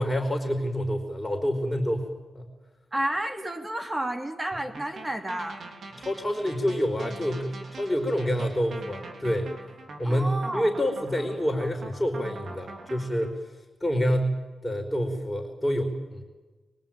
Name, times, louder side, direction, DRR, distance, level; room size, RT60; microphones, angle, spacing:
voice 1, 0.0-2.0 2.3-2.4 6.0-9.5 10.0-13.3 13.8-14.3 14.6-16.2, equal, 15° left, 4 dB, 4.5 m, -27 dB
voice 2, 2.9-5.6 10.0-10.7, right 1 dB, 25° right, 5 dB, 3.1 m, -31 dB
sound 1, 4.7-13.3, right 3 dB, 70° right, 4.7 m, -43 dB
24.0 x 23.0 x 9.1 m, 1.2 s
cardioid pair, 60°, 0 cm